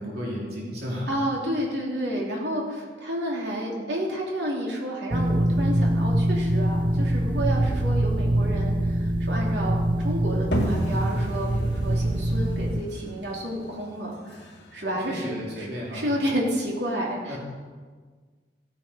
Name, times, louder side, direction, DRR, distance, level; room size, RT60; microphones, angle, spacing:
voice 1, 0.0-1.1 15.1-16.2 17.3-17.4, equal, 60° right, -4 dB, 3.3 m, -33 dB
voice 2, 1.1-9.8 10.0-15.7 15.9-17.4, equal, 75° right, -3 dB, 3.1 m, -30 dB
sound 1, 5.1-12.8, right 1 dB, 25° right, 0.5 m, -24 dB
sound 2, 10.5-16.0, equal, 70° left, 2.3 m, -33 dB
15.0 x 9.2 x 5.1 m, 1.5 s
head